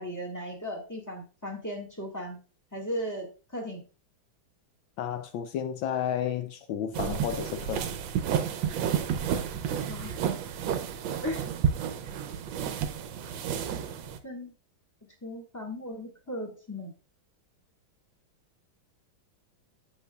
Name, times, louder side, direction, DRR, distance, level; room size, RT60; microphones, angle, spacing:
voice 1, 0.0-2.4 2.7-3.3 3.5-3.8 9.9-10.2 11.2-11.4 14.2-14.5 15.2-16.9, equal, 10° left, 1.4 m, -36 dB
voice 2, 5.0-7.9, left 9 dB, 75° left, 1.2 m, -32 dB
sound 1, 6.9-14.2, right 8 dB, 75° right, 1.3 m, -31 dB
8.6 x 6.9 x 2.3 m
omnidirectional pair, 2.3 m